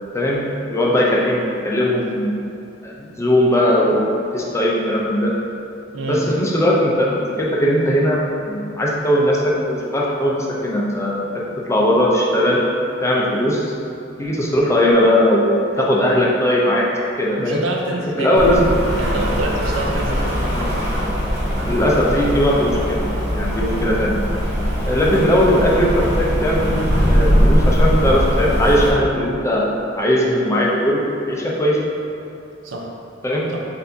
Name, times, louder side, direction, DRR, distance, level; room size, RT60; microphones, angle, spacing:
voice 1, 0.1-2.3 2.8-5.3 6.1-11.2 11.7-12.6 13.0-13.7 14.2-15.5 15.8-16.8 17.2-17.6 18.2-18.7 20.5-20.7 21.7-23.0 23.3-24.1 24.8-26.8 27.1-29.7 30.0-31.8 33.2-33.5, equal, 15° left, -4 dB, 0.5 m, -18 dB
voice 2, 5.9-6.3 17.4-18.6 19.0-20.4 32.6-32.9 33.5-33.6, right 1 dB, 75° right, 0 dB, 0.6 m, -26 dB
Rain, 18.3-28.9, equal, 55° right, 0.9 m, -20 dB
6.5 x 2.6 x 2.7 m, 2.7 s
head